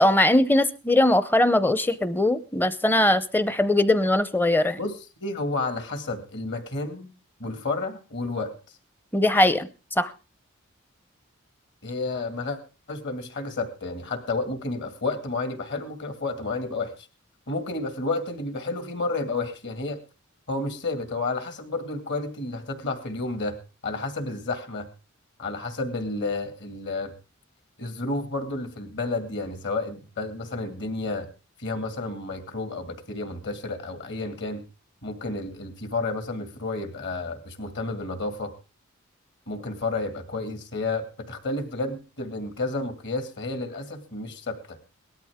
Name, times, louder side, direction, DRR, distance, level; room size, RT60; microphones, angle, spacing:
voice 1, 0.0-4.8 9.1-9.7 10.0-10.1, left 1 dB, 10° left, 15 dB, 0.6 m, -20 dB
voice 2, 5.2-7.1 7.4-8.5 11.8-12.6 12.9-17.1 17.5-20.0 20.5-23.6 23.8-24.9 25.4-27.1 27.8-31.3 31.6-34.6 35.0-38.5 39.5-44.8, left 3 dB, 55° left, 8 dB, 2.3 m, -31 dB
18.5 x 13.0 x 3.6 m, 0.32 s
head